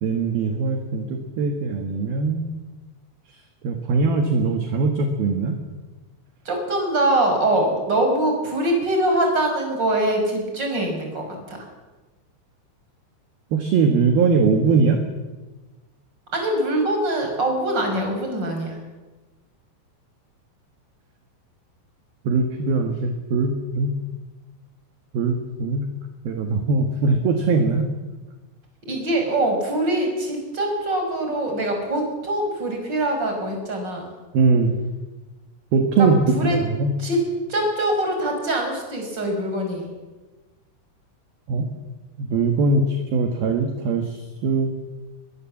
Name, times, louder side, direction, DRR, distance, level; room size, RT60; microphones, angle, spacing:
voice 1, 0.0-2.4 3.6-5.6 13.5-15.0 22.2-23.9 25.1-25.8 26.2-27.9 34.3-34.8 35.7-36.9 41.5-41.7 42.2-44.7, right 4 dB, 60° right, 5 dB, 3.3 m, -21 dB
voice 2, 6.4-11.6 16.3-18.8 28.9-34.1 36.0-36.6 37.0-37.2 37.5-39.9, right 1 dB, 20° right, 2 dB, 5.9 m, -23 dB
23.5 x 21.5 x 7.5 m, 1.2 s
omnidirectional pair, 5.5 m